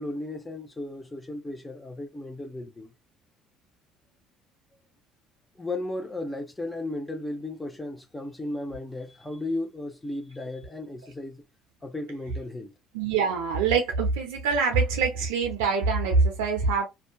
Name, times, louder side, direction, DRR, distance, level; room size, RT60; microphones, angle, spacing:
voice 1, 0.0-2.9 5.5-11.4 11.8-12.7, left 2 dB, 15° left, 0.8 m, -35 dB
voice 2, 12.9-16.9, right 4 dB, 80° right, 0.5 m, -24 dB
2.6 x 2.3 x 2.2 m
hypercardioid pair, 65°, 0 cm